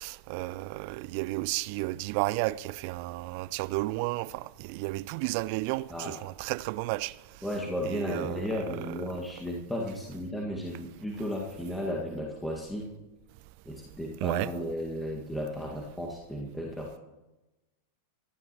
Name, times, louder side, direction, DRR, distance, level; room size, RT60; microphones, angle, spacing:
voice 1, 0.0-7.1 7.9-8.4 8.9-9.0 14.2-14.5, right 20 dB, 45° right, 0.4 m, -32 dB
voice 2, 7.4-12.9 13.7-17.0, left 1 dB, 5° left, 1.9 m, -34 dB
25.5 x 11.5 x 3.1 m
figure-of-eight pair, 90°, 0 cm